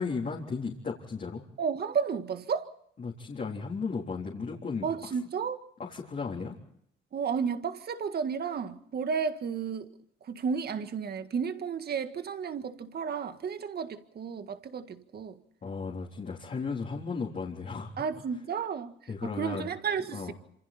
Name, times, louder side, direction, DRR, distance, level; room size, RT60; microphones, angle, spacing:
voice 1, 0.0-1.4 3.0-5.2 5.8-6.6 15.6-18.1 19.1-19.7 20.1-20.3, left 4 dB, 40° left, 3.8 m, -35 dB
voice 2, 1.6-2.7 4.8-5.6 7.1-9.9 10.3-15.4 18.0-18.9 19.2-20.3, right 6 dB, 55° right, 1.9 m, -32 dB
27.5 x 26.5 x 4.3 m
cardioid pair, 90°, 20 cm